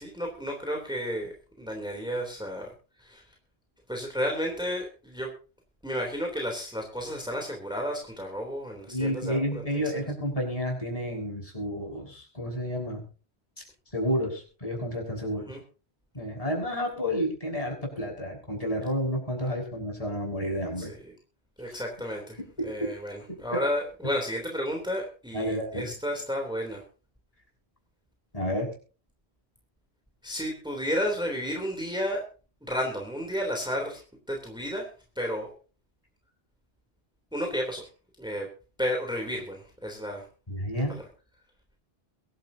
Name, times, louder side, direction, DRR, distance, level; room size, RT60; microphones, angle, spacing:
voice 1, 0.0-2.7 3.0-3.3 3.9-5.3 5.8-10.1 15.5-15.6 20.8-21.1 21.6-22.4 22.6-26.8 30.2-32.2 32.7-34.9 35.1-35.5 37.3-37.9 38.2-38.5 38.8-40.3 40.9-41.0, equal, 5° right, 1 dB, 3.3 m, -32 dB
voice 2, 8.9-13.0 13.9-15.5 16.1-20.9 22.6-22.9 23.3-23.6 25.3-25.9 28.3-28.7 40.5-41.0, equal, 35° left, 0 dB, 6.2 m, -30 dB
23.5 x 12.0 x 2.8 m, 0.36 s
omnidirectional pair, 1.1 m